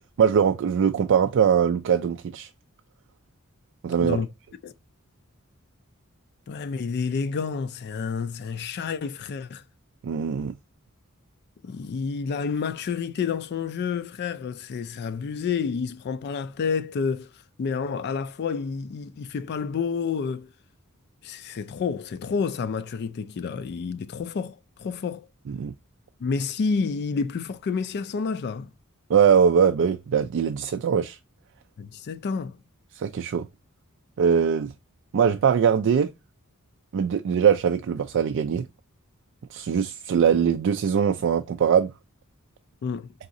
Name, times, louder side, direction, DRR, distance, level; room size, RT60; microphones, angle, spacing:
voice 1, 0.0-2.5 3.8-4.2 10.0-10.5 25.5-25.7 29.1-31.2 33.0-33.5 34.2-34.7 35.1-36.1 36.9-38.7 39.5-41.9, right 7 dB, 60° right, 0.3 m, -22 dB
voice 2, 6.5-9.6 11.6-17.3 17.6-20.5 21.2-25.3 26.2-28.7 31.8-32.6 42.8-43.1, left 5 dB, 50° left, 0.3 m, -29 dB
4.0 x 3.6 x 2.6 m
head